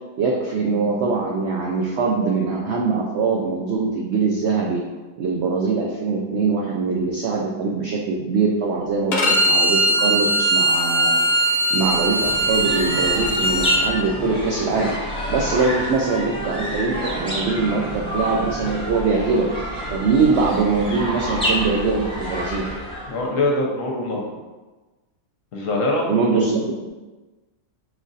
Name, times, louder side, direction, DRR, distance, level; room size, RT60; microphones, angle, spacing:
voice 1, 0.2-4.8 5.2-19.5 19.9-22.7 26.1-26.9, right 4 dB, 70° right, -2 dB, 0.6 m, -22 dB
Bowed string instrument, 9.1-13.8, right 1 dB, 85° left, 0.4 m, -20 dB
sound 1, 11.7-23.3, equal, 5° left, 0.6 m, -28 dB
voice 2, 23.1-24.4 25.5-26.1, left 2 dB, 60° left, -1 dB, 1.0 m, -23 dB
5.1 x 2.5 x 3.9 m, 1.2 s
omnidirectional pair, 1.7 m